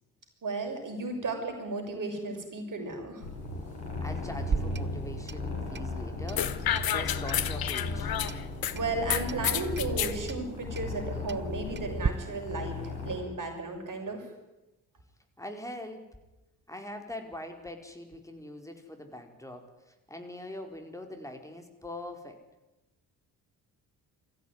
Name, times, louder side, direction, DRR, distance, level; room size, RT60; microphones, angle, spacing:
voice 1, 0.4-3.3 8.7-14.3, right 3 dB, 45° right, 4 dB, 6.5 m, -34 dB
sound 1, 3.2-13.2, left 2 dB, 85° left, 5.6 m, -36 dB
voice 2, 4.0-8.1 15.4-16.0 16.7-22.4, left 1 dB, 5° left, 4 dB, 4.8 m, -42 dB
Clock, 4.4-12.1, right 6 dB, 25° right, 0.7 m, -39 dB
sound 2, 6.4-8.7 9.1-10.1, left 10 dB, 50° left, 1.4 m, -30 dB
23.0 x 15.0 x 9.7 m, 1.0 s
hypercardioid pair, 45°, 45 cm